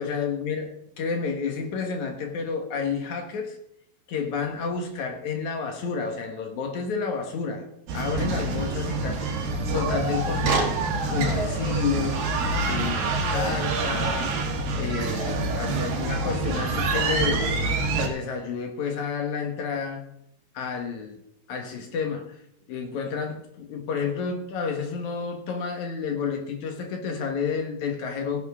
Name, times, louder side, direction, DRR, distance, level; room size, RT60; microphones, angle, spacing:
voice 1, 0.0-3.6 4.1-7.7 7.9-9.4 9.7-10.8 11.1-12.3 12.7-14.3 14.8-17.6 18.0-20.0 20.5-21.2 21.5-22.4 22.7-28.4, left 5 dB, 60° left, 5 dB, 2.6 m, -30 dB
sound 1, 7.9-18.1, right 3 dB, 70° right, 3.3 m, -26 dB
15.5 x 11.0 x 3.6 m, 0.74 s
omnidirectional pair, 4.2 m